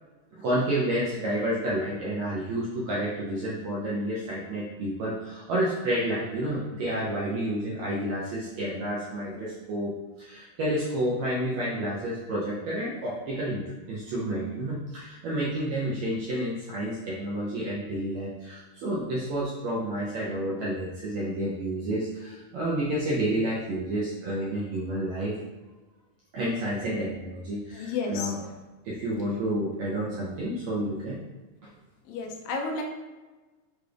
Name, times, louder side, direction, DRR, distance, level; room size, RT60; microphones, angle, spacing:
voice 1, 0.4-9.9 10.2-25.3 26.3-28.4 28.8-31.2, right 1 dB, 90° right, -6 dB, 1.5 m, -30 dB
voice 2, 27.7-28.3 32.1-32.8, left 4 dB, 90° left, 1 dB, 2.3 m, -31 dB
6.6 x 3.2 x 2.4 m, 1.2 s
omnidirectional pair, 4.0 m